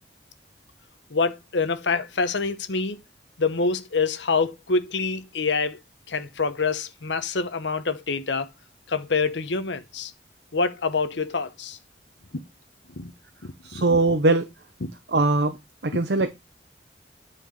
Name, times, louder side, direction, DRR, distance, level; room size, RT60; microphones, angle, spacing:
voice 1, 1.1-3.0 3.4-5.8 6.1-8.5 8.9-10.1 10.5-11.8 13.0-13.1 13.7-13.8, left 4 dB, 85° left, 1.0 m, -26 dB
voice 2, 13.6-14.5 15.1-15.6 15.8-16.3, right 2 dB, 65° right, 0.8 m, -21 dB
9.3 x 4.5 x 5.1 m
head